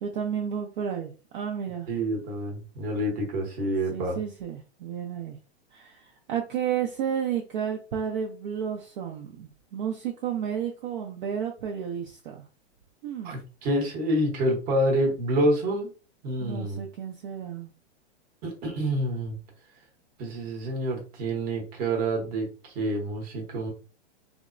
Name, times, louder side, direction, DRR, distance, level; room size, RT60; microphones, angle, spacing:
voice 1, 0.0-1.9 3.9-5.4 5.7-12.4 13.0-13.4 16.4-17.7, right 8 dB, 45° right, 1 dB, 0.5 m, -32 dB
voice 2, 1.9-4.2 13.2-15.9 16.2-16.8 18.4-19.4 20.2-23.7, right 1 dB, 25° right, 1 dB, 0.9 m, -27 dB
3.4 x 2.0 x 2.4 m, 0.35 s
hypercardioid pair, 150°, 35 cm